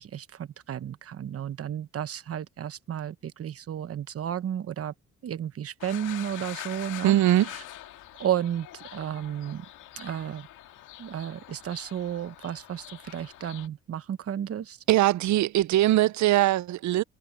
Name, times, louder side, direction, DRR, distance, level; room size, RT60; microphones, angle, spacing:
voice 1, 0.0-4.9 5.2-7.2 8.2-9.6 10.0-10.5 11.0-14.8, right 10 dB, 50° right, 1.0 m, -33 dB
sound 1, 5.8-13.7, left 14 dB, 90° left, 1.9 m, -44 dB
voice 2, 7.0-7.5 14.9-17.0, right 14 dB, 70° right, 0.6 m, -21 dB
cardioid pair, 90°, 30 cm